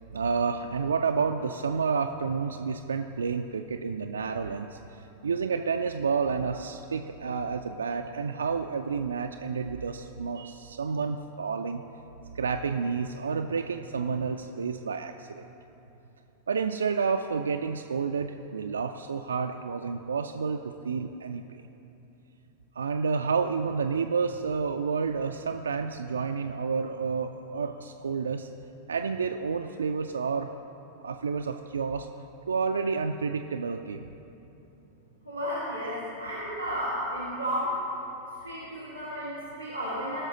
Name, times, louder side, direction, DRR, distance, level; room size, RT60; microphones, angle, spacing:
voice 1, 0.1-11.8 12.3-15.5 16.5-21.6 22.8-28.5 28.9-30.5 31.0-32.1 32.5-34.1, right 5 dB, 70° right, 5 dB, 0.3 m, -30 dB
voice 2, 35.2-37.8 38.4-40.2, equal, 90° left, -10 dB, 1.9 m, -33 dB
17.5 x 6.2 x 3.8 m, 3.0 s
figure-of-eight pair, 90°, 0 cm